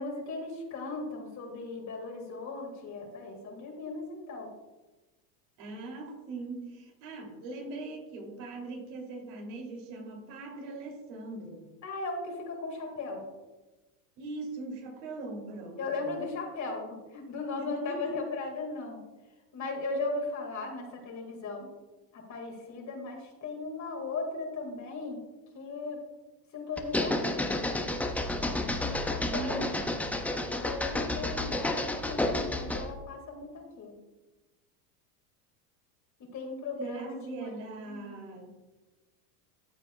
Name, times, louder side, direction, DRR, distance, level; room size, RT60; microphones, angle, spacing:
voice 1, 0.0-4.5 11.8-13.3 15.8-19.0 19.5-21.7 22.1-25.2 25.5-26.0 26.5-27.5 28.7-29.8 30.3-33.9 36.3-37.5 37.9-38.2, left 3 dB, 35° left, 2 dB, 2.0 m, -37 dB
voice 2, 5.6-11.7 14.2-16.2 17.6-18.2 29.3-29.9 36.8-38.6, right 2 dB, 60° right, 1 dB, 2.9 m, -41 dB
sound 1, 26.8-32.9, left 1 dB, 5° left, 0.4 m, -31 dB
13.5 x 6.8 x 2.3 m, 1.1 s
supercardioid pair, 105°, 50 cm